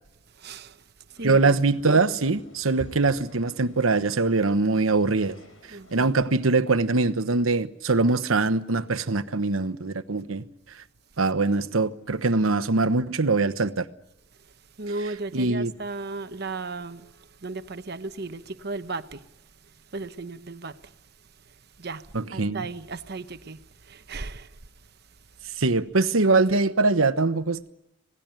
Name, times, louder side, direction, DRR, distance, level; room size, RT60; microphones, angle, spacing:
voice 1, 0.4-0.8 1.1-1.6 5.7-6.1 11.2-11.3 14.8-19.3 19.9-20.9 21.8-22.1 22.3-24.6 26.2-26.3, right 3 dB, 50° right, 1.0 m, -35 dB
sound 1, 1.1-6.1, left 1 dB, 70° left, 6.0 m, -49 dB
voice 2, 1.2-5.4 5.9-10.4 11.2-13.9 15.3-15.7 22.1-22.6 25.6-27.7, right 3 dB, 90° right, 1.1 m, -23 dB
26.5 x 18.5 x 9.0 m
head